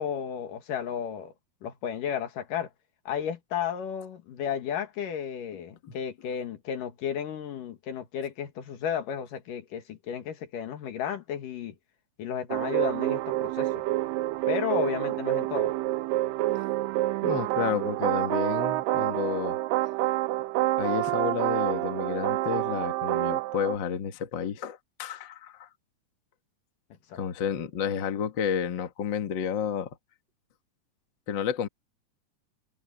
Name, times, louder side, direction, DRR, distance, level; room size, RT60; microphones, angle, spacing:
voice 1, 0.0-1.3 1.6-2.7 3.1-11.7 12.2-13.7 14.5-15.7 27.1-27.2, left 8 dB, 75° left, 3.3 m, -33 dB
sound 1, 12.5-23.8, right 17 dB, 85° right, 2.3 m, -28 dB
voice 2, 17.2-19.6 20.8-25.7 27.1-29.9 31.3-31.7, left 7 dB, 45° left, 1.8 m, -31 dB
omnidirectional pair, 3.9 m